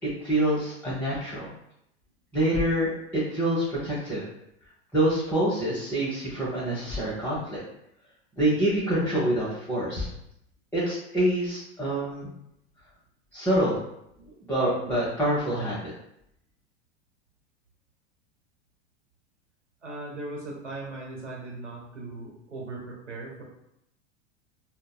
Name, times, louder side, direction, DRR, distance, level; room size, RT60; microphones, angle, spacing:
voice 1, 0.0-1.5 2.3-4.2 4.9-7.6 8.4-10.1 10.7-12.3 13.3-13.8 14.5-15.9, right 1 dB, 5° left, -9 dB, 0.8 m, -26 dB
voice 2, 19.8-23.4, right 2 dB, 85° right, -3 dB, 1.0 m, -38 dB
3.7 x 2.2 x 2.2 m, 0.78 s
figure-of-eight pair, 90°, 35 cm